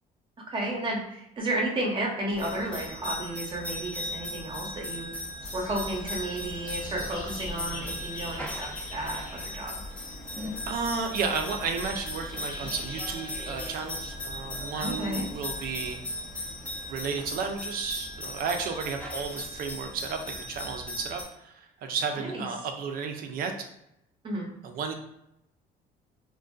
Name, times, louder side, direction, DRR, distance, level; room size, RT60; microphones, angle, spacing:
voice 1, 0.5-5.1 5.5-9.7 14.8-15.3 22.1-22.4 24.2-24.5, right 1 dB, 30° right, -2 dB, 0.7 m, -32 dB
sound 1, 2.3-21.2, left 1 dB, 5° left, 0.5 m, -38 dB
sound 2, 5.4-15.9, left 1 dB, 50° left, 0.7 m, -43 dB
voice 2, 10.4-16.0 16.9-23.5 24.6-24.9, right 5 dB, 60° right, 5 dB, 0.4 m, -33 dB
2.5 x 2.2 x 2.2 m, 0.84 s
cardioid pair, 110°, 17 cm